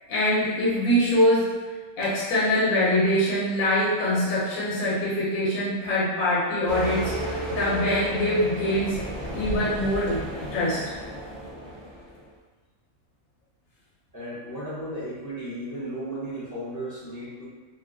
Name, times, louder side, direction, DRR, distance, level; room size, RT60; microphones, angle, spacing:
voice 1, 0.1-1.6 2.0-9.0 9.3-11.0, left 1 dB, 80° left, -7 dB, 1.2 m, -24 dB
sound 1, 6.7-12.2, right 1 dB, 40° right, 0.6 m, -33 dB
voice 2, 14.1-17.5, right 1 dB, 30° left, -11 dB, 0.3 m, -35 dB
2.8 x 2.2 x 2.4 m, 1.3 s
omnidirectional pair, 1.4 m